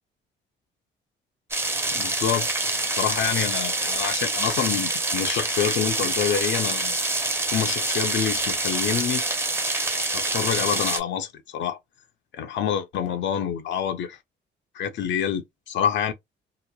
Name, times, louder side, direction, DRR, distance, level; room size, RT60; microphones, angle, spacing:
sound 1, 1.5-11.0, right 2 dB, 10° right, 0.6 m, -26 dB
voice 1, 1.9-2.5 2.8-6.9 7.5-9.2 10.1-11.8 12.3-14.2 14.7-16.1, left 8 dB, 65° left, 0.5 m, -27 dB
2.9 x 2.0 x 2.2 m
cardioid pair, 90°, 20 cm